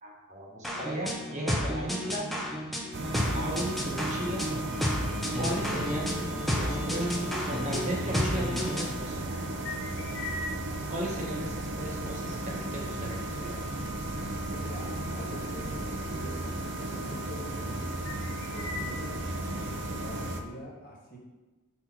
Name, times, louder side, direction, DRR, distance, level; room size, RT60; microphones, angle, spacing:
voice 1, 0.0-2.3 3.3-4.5 5.3-6.2 6.5-9.5 10.9-13.8, right 1 dB, 35° right, -2 dB, 1.2 m, -36 dB
sound 1, 0.6-9.0, equal, ahead, 0.8 m, -32 dB
sound 2, 2.3-20.0, left 2 dB, 60° left, 1.2 m, -47 dB
sound 3, 2.9-20.4, right 1 dB, 55° right, 0.7 m, -35 dB
voice 2, 14.6-17.6 18.5-21.2, equal, 40° left, -3 dB, 1.8 m, -45 dB
5.9 x 4.3 x 6.0 m, 1.2 s
head